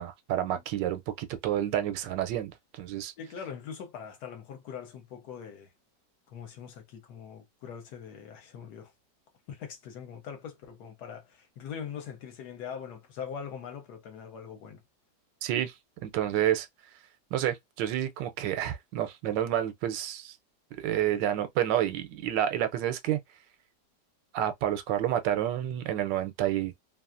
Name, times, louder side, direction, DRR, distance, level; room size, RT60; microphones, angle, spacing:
voice 1, 0.0-3.1 15.4-15.7 16.0-16.7 17.3-20.4 20.7-23.2 24.3-26.7, right 11 dB, 85° right, 1.2 m, -29 dB
voice 2, 3.2-5.7 6.3-8.9 9.5-14.8, left 7 dB, 70° left, 1.2 m, -42 dB
2.9 x 2.4 x 2.4 m
omnidirectional pair, 1.9 m